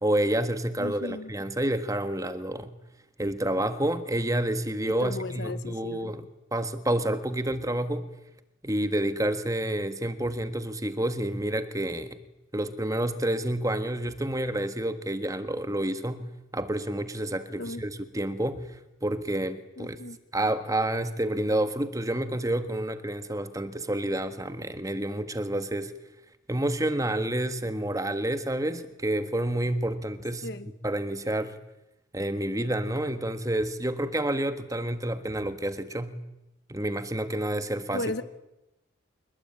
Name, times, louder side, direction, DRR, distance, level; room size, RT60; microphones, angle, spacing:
voice 1, 0.0-2.7 3.2-6.2 6.5-8.1 8.6-12.2 12.5-18.6 19.0-20.0 20.3-25.9 26.5-30.5 30.8-31.6 32.1-36.2 36.7-38.0, right 1 dB, 15° right, 1.5 m, -29 dB
voice 2, 0.8-1.3 5.0-6.1 17.6-17.9 19.8-20.2 30.4-30.7 37.9-38.2, left 2 dB, 55° left, 1.2 m, -35 dB
26.5 x 22.0 x 8.9 m
head